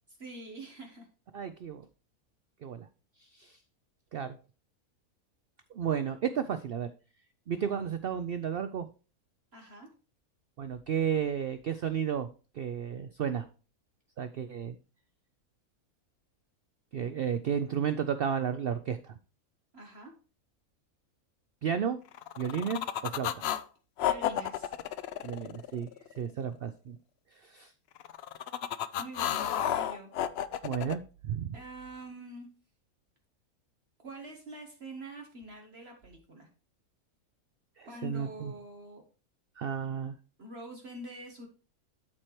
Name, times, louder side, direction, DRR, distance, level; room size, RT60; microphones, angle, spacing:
voice 1, 0.2-1.1 9.5-9.9 19.7-20.1 24.0-24.7 29.0-30.1 31.5-32.5 34.0-36.5 37.8-39.0 40.4-41.5, right 1 dB, 45° right, 2 dB, 1.5 m, -45 dB
voice 2, 1.3-1.9 2.6-2.9 3.3-3.6 4.1-4.4 5.7-6.9 7.5-8.9 10.6-12.3 12.5-13.5 14.2-14.8 16.9-19.1 21.6-22.0 22.4-23.4 25.2-25.9 26.2-27.0 27.4-27.7 30.6-31.5 37.8-38.5 39.6-40.2, right 8 dB, 80° right, 11 dB, 0.5 m, -32 dB
sound 1, 22.1-23.6 24.0-26.2 28.0-31.0, left 10 dB, 70° left, 0.6 m, -32 dB
13.0 x 4.4 x 3.1 m, 0.35 s
omnidirectional pair, 1.6 m